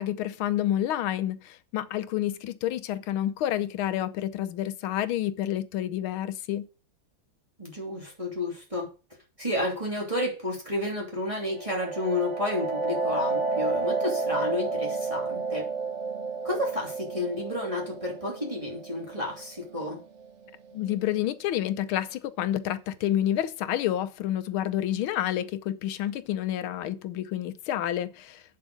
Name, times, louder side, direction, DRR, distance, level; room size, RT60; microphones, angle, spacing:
voice 1, 0.0-6.7 20.7-28.4, left 12 dB, 85° left, 1.6 m, -29 dB
voice 2, 7.6-8.9 9.4-15.7 16.4-20.0, left 2 dB, 15° right, 2.9 m, -31 dB
sound 1, 11.4-20.9, right 4 dB, 40° right, 1.2 m, -31 dB
8.1 x 7.3 x 6.3 m
omnidirectional pair, 2.3 m